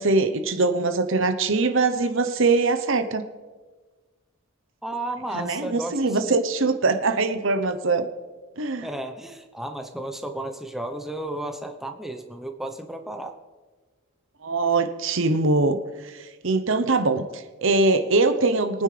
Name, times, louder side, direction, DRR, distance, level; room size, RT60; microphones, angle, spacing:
voice 1, 0.0-3.2 5.3-8.1 8.6-8.9 14.4-15.8 16.1-18.8, right 3 dB, 60° right, 9 dB, 0.8 m, -22 dB
voice 2, 4.8-6.3 8.8-13.4, right 1 dB, ahead, 5 dB, 0.8 m, -33 dB
23.0 x 9.3 x 3.4 m, 1.3 s
head